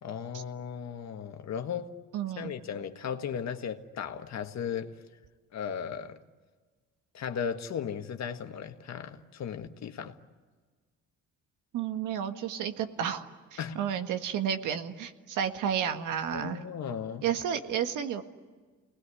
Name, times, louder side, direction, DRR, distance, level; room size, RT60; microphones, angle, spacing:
voice 1, 0.0-1.9 2.4-5.0 5.5-6.2 7.1-10.2 13.6-13.8 16.3-17.2, left 7 dB, 60° left, 1.7 m, -36 dB
voice 2, 2.1-2.5 11.7-16.6 17.2-18.2, right 8 dB, 85° right, 1.7 m, -32 dB
29.5 x 20.0 x 9.9 m
cardioid pair, 90°, 30 cm